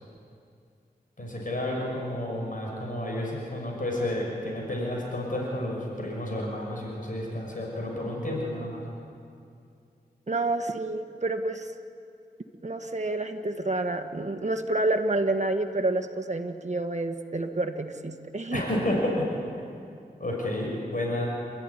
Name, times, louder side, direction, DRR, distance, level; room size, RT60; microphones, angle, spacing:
voice 1, 1.2-8.8 18.5-19.3 20.2-21.3, left 1 dB, 55° left, -1 dB, 5.9 m, -31 dB
voice 2, 10.3-11.7 12.6-18.6, right 2 dB, 45° right, 6 dB, 1.7 m, -29 dB
28.0 x 13.5 x 10.0 m, 2.4 s
cardioid pair, 50°, 17 cm